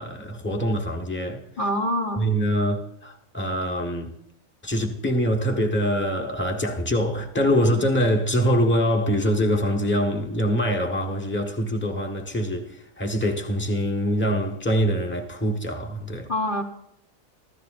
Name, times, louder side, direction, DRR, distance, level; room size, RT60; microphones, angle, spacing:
voice 1, 0.0-1.4 2.2-4.1 4.6-16.3, equal, 10° left, 1.4 m, -24 dB
voice 2, 1.6-2.2 16.3-16.6, equal, 40° left, 1.1 m, -25 dB
25.5 x 15.0 x 2.6 m
omnidirectional pair, 1.4 m